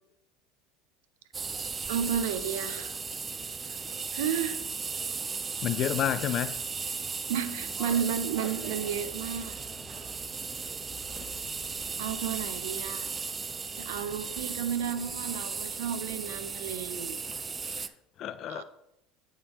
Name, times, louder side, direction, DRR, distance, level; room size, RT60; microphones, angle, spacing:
sound 1, 1.3-17.9, right 5 dB, 25° right, 0.4 m, -36 dB
voice 1, 1.9-2.9 3.6-3.8 4.1-4.6 7.3-9.6 9.9-10.1 12.0-13.1 13.7-17.4 18.5-18.6, right 8 dB, 75° right, 0.6 m, -32 dB
voice 2, 5.6-6.6 17.6-17.9 18.2-18.6, left 11 dB, 50° left, 0.3 m, -30 dB
sound 2, 7.6-12.9, left 1 dB, 30° left, 1.6 m, -49 dB
8.6 x 3.7 x 4.2 m
hypercardioid pair, 75°, 0 cm